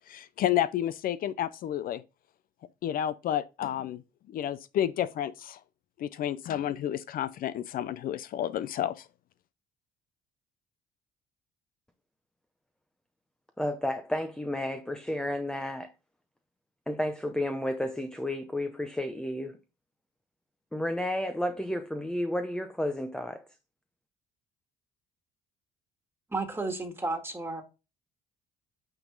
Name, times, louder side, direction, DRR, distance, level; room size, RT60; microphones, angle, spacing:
voice 1, 0.1-2.0 2.8-4.0 4.3-5.6 6.0-9.1, left 11 dB, 60° left, 0.5 m, -30 dB
voice 2, 13.6-15.9 16.9-19.6 20.7-23.4, left 1 dB, 5° left, 0.7 m, -32 dB
voice 3, 26.3-27.6, right 2 dB, 15° right, 1.8 m, -32 dB
8.9 x 3.8 x 3.9 m
cardioid pair, 110°, 17 cm